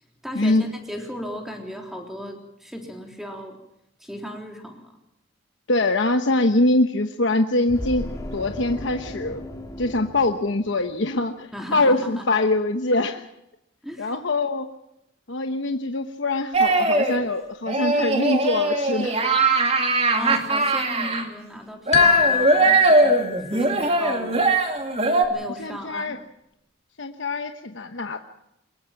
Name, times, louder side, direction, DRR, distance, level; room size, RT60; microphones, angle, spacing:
voice 1, 0.2-3.6 4.0-4.9 11.5-12.2 13.8-14.1 20.1-24.5 25.3-26.2, equal, ahead, 2 dB, 3.6 m, -36 dB
voice 2, 5.7-9.4 9.8-13.3 14.0-14.7 15.3-19.2 25.6-26.2 27.0-28.2, left 2 dB, 65° left, 6 dB, 1.1 m, -23 dB
sound 1, 7.7-11.1, left 1 dB, 15° left, 2.5 m, -36 dB
sound 2, 16.5-17.2 17.7-21.2 21.9-25.3, right 2 dB, 30° right, 2.5 m, -20 dB
sound 3, 21.9-23.5, left 7 dB, 35° left, 3.6 m, -22 dB
23.0 x 21.5 x 5.9 m, 0.81 s
head